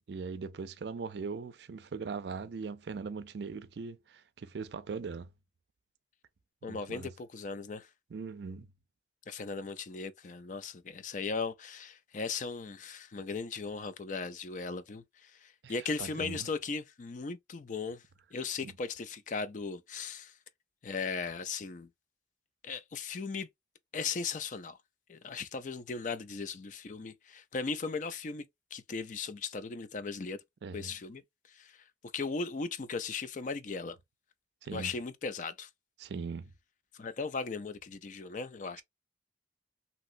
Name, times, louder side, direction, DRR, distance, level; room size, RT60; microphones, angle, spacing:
voice 1, 0.1-5.3 6.7-7.1 8.1-8.7 15.6-16.5 18.6-18.7 30.6-31.0 34.6-34.9 36.0-36.5, right 5 dB, 70° right, 0.4 m, -40 dB
voice 2, 6.6-7.9 9.3-18.0 18.3-20.3 20.8-21.9 22.6-23.5 23.9-24.8 25.1-28.4 28.7-30.4 30.7-31.2 31.5-31.8 32.1-34.0 34.7-35.7 36.9-38.8, left 4 dB, 45° left, 0.4 m, -37 dB
3.0 x 2.9 x 2.5 m
head